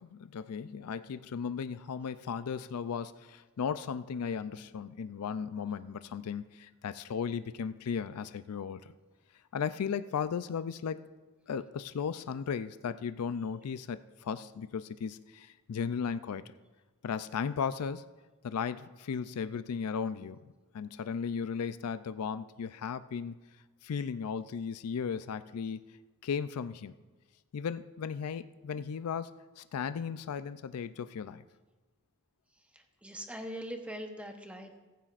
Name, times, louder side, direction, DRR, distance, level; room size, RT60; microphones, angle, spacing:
voice 1, 0.0-8.9 9.5-11.0 11.5-16.5 17.0-18.0 18.4-20.4 20.7-23.4 23.8-26.0 26.2-26.9 27.5-29.3 29.6-31.4, left 6 dB, 85° left, 13 dB, 0.4 m, -36 dB
voice 2, 32.7-34.8, equal, 5° right, 4 dB, 0.9 m, -42 dB
15.0 x 15.0 x 2.5 m, 1.3 s
head